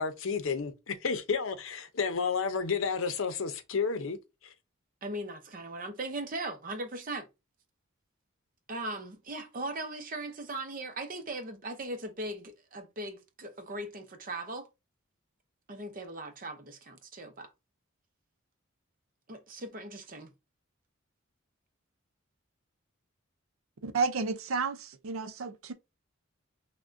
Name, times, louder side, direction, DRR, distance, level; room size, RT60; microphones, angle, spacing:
voice 1, 0.0-4.2, left 5 dB, 70° left, 0.6 m, -31 dB
voice 2, 5.0-7.3 8.7-14.7 15.7-17.5 19.3-20.3, right 2 dB, 40° right, 0.6 m, -39 dB
voice 3, 23.8-25.7, right 4 dB, 80° right, 0.5 m, -31 dB
5.9 x 2.2 x 2.6 m
head